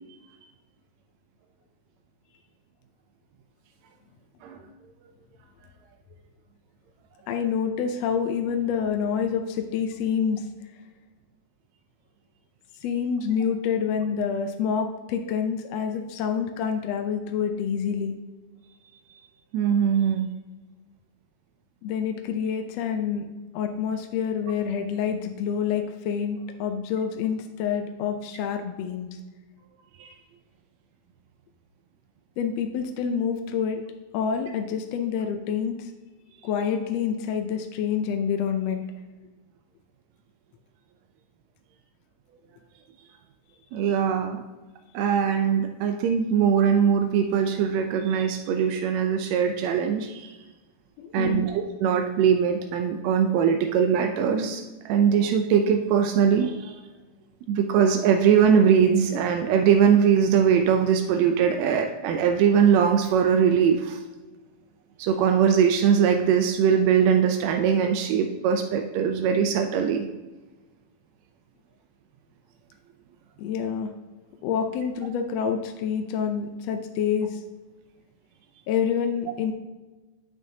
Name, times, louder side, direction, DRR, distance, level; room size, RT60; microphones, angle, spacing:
voice 1, 7.3-10.4 12.8-18.2 21.8-23.3 23.5-29.2 32.4-33.8 34.1-35.9 36.4-38.8 51.0-51.5 73.4-73.9 74.4-77.4 78.7-79.5, left 7 dB, 75° left, 5 dB, 1.6 m, -27 dB
voice 2, 19.5-20.3 30.0-30.1 43.7-44.4 44.9-50.4 51.1-56.8 57.5-64.0 65.0-70.1, right 7 dB, 80° right, 4 dB, 1.7 m, -21 dB
9.3 x 7.5 x 2.7 m, 1.2 s
omnidirectional pair, 3.4 m